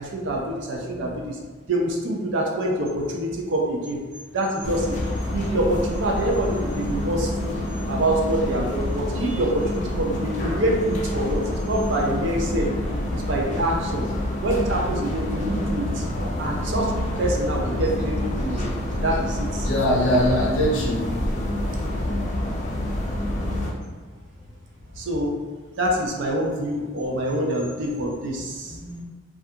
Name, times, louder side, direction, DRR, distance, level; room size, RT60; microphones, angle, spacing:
voice 1, 0.0-1.4 1.7-4.0 4.3-5.0 5.3-7.6 7.9-12.8 13.1-14.1 14.4-16.1 16.4-16.9 17.2-18.7 19.0-19.7 25.0-25.3 25.8-28.8, right 1 dB, 65° right, 0 dB, 0.4 m, -25 dB
sound 1, 4.6-23.7, left 1 dB, 35° left, 0.3 m, -27 dB
voice 2, 19.6-21.0 28.6-29.0, equal, 70° left, -4 dB, 0.7 m, -23 dB
2.3 x 2.3 x 2.7 m, 1.3 s
head